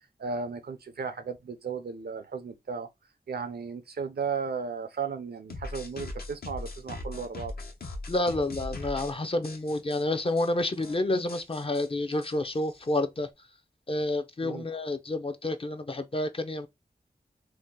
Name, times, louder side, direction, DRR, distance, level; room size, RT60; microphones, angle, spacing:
voice 1, 0.2-2.9 3.3-7.5 14.4-14.7, right 5 dB, 70° right, 0.5 m, -35 dB
sound 1, 5.5-9.1 9.4-10.0 10.4-10.5 10.7-11.0 11.3-13.0, left 2 dB, 70° left, 0.9 m, -40 dB
voice 2, 8.1-13.3 13.9-16.7, left 2 dB, 35° left, 0.5 m, -29 dB
2.8 x 2.1 x 3.6 m
cardioid pair, 50°, 17 cm